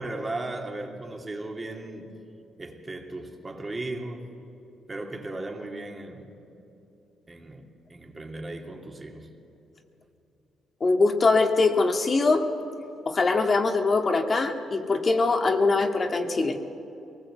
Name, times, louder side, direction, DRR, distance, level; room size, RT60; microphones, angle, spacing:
voice 1, 0.0-2.1 2.6-4.3 4.9-6.3 7.3-9.3, right 2 dB, 25° right, 2.6 m, -36 dB
voice 2, 10.8-12.5 13.1-16.6, left 3 dB, 35° left, 1.8 m, -22 dB
23.0 x 19.0 x 8.1 m
cardioid pair, 90°, 0 cm